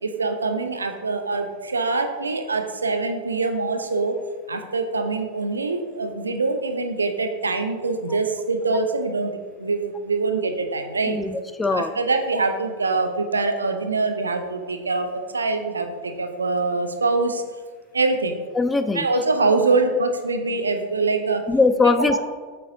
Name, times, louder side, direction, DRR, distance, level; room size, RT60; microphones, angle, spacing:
voice 1, 0.0-4.2 4.5-11.2 11.7-17.4 17.9-18.4 18.9-21.4 21.8-22.2, right 3 dB, 75° right, 6 dB, 0.6 m, -24 dB
voice 2, 11.1-11.9 18.6-19.1 21.5-22.2, left 3 dB, 10° left, 9 dB, 0.3 m, -20 dB
8.1 x 5.3 x 2.7 m, 1.5 s
figure-of-eight pair, 90°, 0 cm